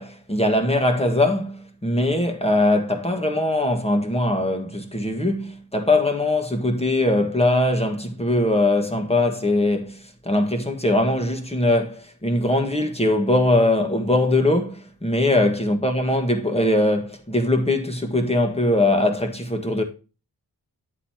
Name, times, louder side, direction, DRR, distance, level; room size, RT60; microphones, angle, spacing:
voice 1, 0.0-19.8, left 1 dB, 15° left, 1.7 m, -21 dB
9.3 x 8.2 x 2.9 m
wide cardioid pair, 100°, 40 cm